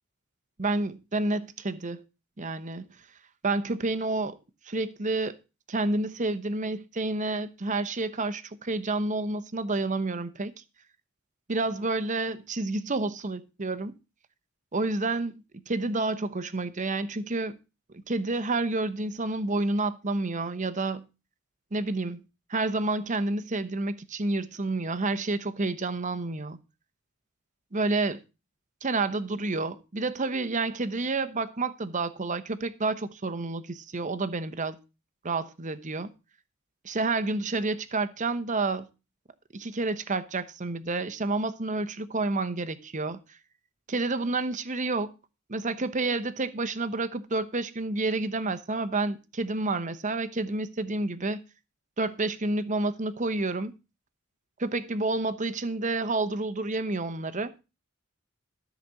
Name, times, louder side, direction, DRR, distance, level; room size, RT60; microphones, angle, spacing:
voice 1, 0.6-2.0 2.4-2.8 3.4-4.4 4.7-5.4 5.7-10.5 11.5-13.9 14.7-15.4 15.7-17.6 18.1-21.1 21.7-22.2 22.5-26.6 27.7-28.2 28.8-34.8 35.2-36.1 36.8-38.9 39.5-43.2 43.9-45.1 45.5-51.4 52.0-53.7 54.6-57.5, right 2 dB, 35° right, 0.9 m, -29 dB
13.5 x 5.1 x 7.5 m
head